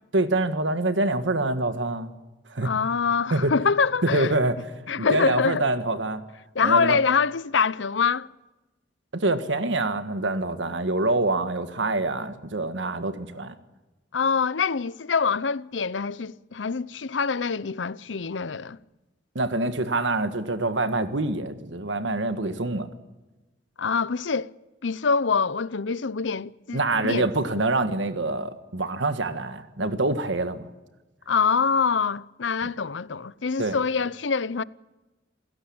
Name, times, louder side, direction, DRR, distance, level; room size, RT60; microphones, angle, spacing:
voice 1, 0.1-2.1 2.5-2.7 3.3-3.5 4.0-4.6 5.0-6.2 6.6-7.0 9.1-13.5 19.3-22.9 26.7-30.6 33.6-33.8, right 2 dB, 90° right, 1.6 m, -25 dB
voice 2, 2.6-4.3 4.9-5.6 6.5-8.3 14.1-18.8 23.8-24.5 24.8-27.3 31.3-34.6, left 5 dB, 85° left, 0.7 m, -25 dB
28.0 x 17.0 x 8.7 m
head